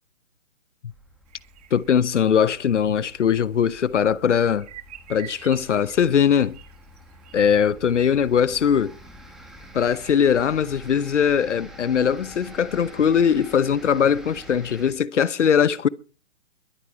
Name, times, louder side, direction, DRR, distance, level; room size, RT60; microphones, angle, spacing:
sound 1, 0.9-14.9, equal, ahead, 1.8 m, -46 dB
sound 2, 1.3-10.1, right 12 dB, 30° right, 1.3 m, -49 dB
voice 1, 1.7-4.7 5.1-6.6 7.3-9.0 9.7-15.9, left 8 dB, 65° left, 0.9 m, -20 dB
22.5 x 8.4 x 4.6 m
hypercardioid pair, 150°, 39 cm